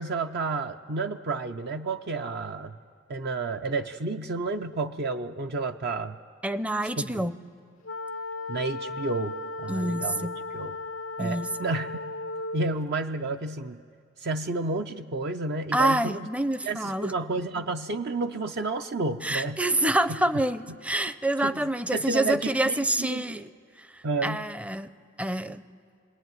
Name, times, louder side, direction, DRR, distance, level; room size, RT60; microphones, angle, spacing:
voice 1, 0.0-2.7 3.1-6.2 7.0-7.2 8.5-10.8 11.2-12.1 12.5-13.8 14.2-16.3 16.6-19.6 20.3-20.4 21.4-23.2 24.0-24.5, right 3 dB, 55° right, 6 dB, 0.6 m, -31 dB
voice 2, 6.4-7.4 9.7-10.3 11.2-11.5 15.7-17.1 19.2-23.5 24.2-24.9 25.2-25.6, right 1 dB, 5° right, 13 dB, 0.6 m, -27 dB
sound 1, 7.8-12.8, left 2 dB, 85° left, 0.6 m, -36 dB
26.5 x 21.0 x 9.3 m, 2.3 s
head